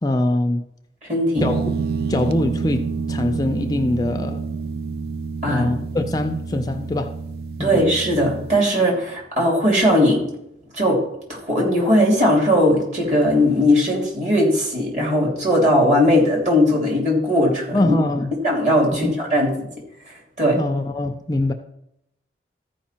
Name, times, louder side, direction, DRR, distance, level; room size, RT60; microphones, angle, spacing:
voice 1, 0.0-0.6 1.4-1.7 2.1-2.8 3.1-4.4 5.5-7.1 7.6-7.8 17.7-18.3 18.9-19.1 20.6-21.5, left 1 dB, 20° left, 0.4 m, -22 dB
voice 2, 1.1-1.4 5.4-5.7 7.6-10.2 10.7-11.0 11.3-18.0 18.4-19.5 20.4-20.6, left 1 dB, 40° right, 3.0 m, -18 dB
sound 1, 1.4-8.6, right 5 dB, 60° right, 0.5 m, -28 dB
14.0 x 5.0 x 4.4 m
head